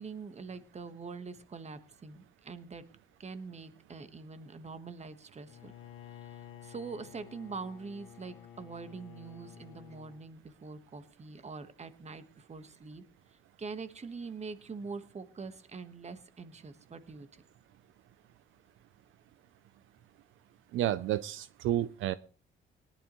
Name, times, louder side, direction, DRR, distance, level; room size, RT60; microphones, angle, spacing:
voice 1, 0.0-2.9 3.2-5.7 6.1-13.0 13.6-17.3, right 4 dB, 35° right, 11 dB, 1.3 m, -44 dB
Bowed string instrument, 5.5-10.3, left 10 dB, 85° left, 1.5 m, -51 dB
voice 2, 20.7-22.1, right 12 dB, 80° right, 14 dB, 0.5 m, -30 dB
19.0 x 11.5 x 3.1 m, 0.38 s
cardioid pair, 90°, 20 cm